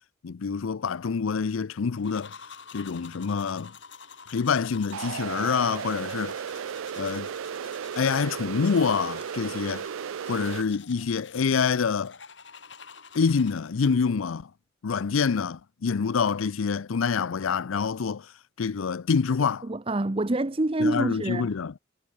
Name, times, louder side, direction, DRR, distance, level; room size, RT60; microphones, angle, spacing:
voice 1, 0.2-2.4 2.7-3.7 4.3-6.5 7.0-7.3 8.0-9.9 10.3-12.1 13.1-14.5 14.8-18.3 18.6-19.7 20.8-21.7, left 5 dB, 90° left, 0.5 m, -26 dB
sound 1, 2.0-13.9, left 6 dB, 60° left, 5.2 m, -49 dB
sound 2, 4.9-10.6, right 7 dB, 90° right, 0.4 m, -35 dB
voice 2, 19.6-21.5, right 2 dB, 25° right, 0.7 m, -26 dB
head